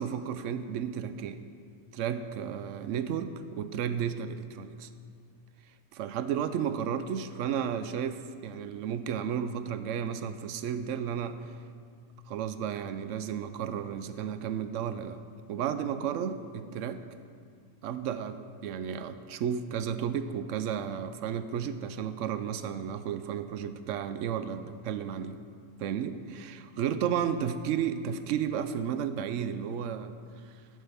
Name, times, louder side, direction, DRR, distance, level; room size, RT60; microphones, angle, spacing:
voice 1, 0.0-1.4 1.9-4.9 5.9-11.5 12.3-15.2 15.5-17.0 17.8-25.4 25.8-30.1, right 8 dB, 65° right, 11 dB, 0.8 m, -33 dB
13.5 x 11.0 x 3.5 m, 2.2 s
omnidirectional pair, 1.6 m